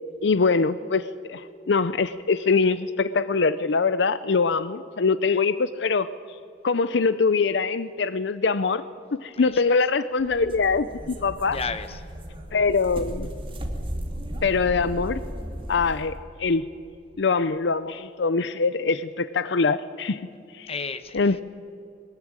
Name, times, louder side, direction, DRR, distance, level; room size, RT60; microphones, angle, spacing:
voice 1, 0.2-6.4 6.6-8.8 9.1-11.6 12.5-13.3 14.4-15.3 15.7-16.7 17.2-20.3 20.5-20.7 21.1-21.4, left 4 dB, 65° left, 15 dB, 0.6 m, -23 dB
voice 2, 9.3-9.8 11.5-12.1 20.7-21.4, left 4 dB, 35° left, 10 dB, 1.2 m, -34 dB
sound 1, 10.2-16.2, equal, 30° right, 2.5 m, -35 dB
21.5 x 20.5 x 8.9 m, 2.6 s
head